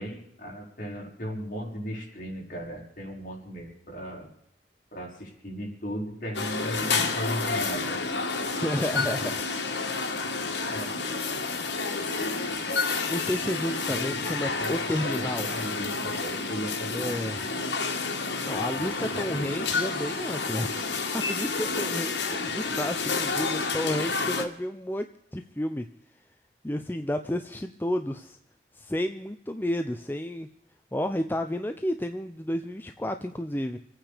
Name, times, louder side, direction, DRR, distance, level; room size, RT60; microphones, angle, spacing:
voice 1, 0.0-4.3 4.9-8.5 9.1-9.3 10.7-10.9 13.9-14.2 14.6-17.2 17.5-17.6 18.7-19.5, equal, 50° left, -2 dB, 5.2 m, -37 dB
sound 1, 6.3-24.4, left 4 dB, 80° left, 2.0 m, -30 dB
voice 2, 8.6-9.4 13.1-15.5 16.9-17.4 18.1-22.1 22.4-25.8 26.6-28.4 28.7-30.5 30.9-33.8, left 1 dB, 10° left, 7 dB, 0.6 m, -31 dB
27.0 x 9.2 x 5.0 m, 0.73 s
head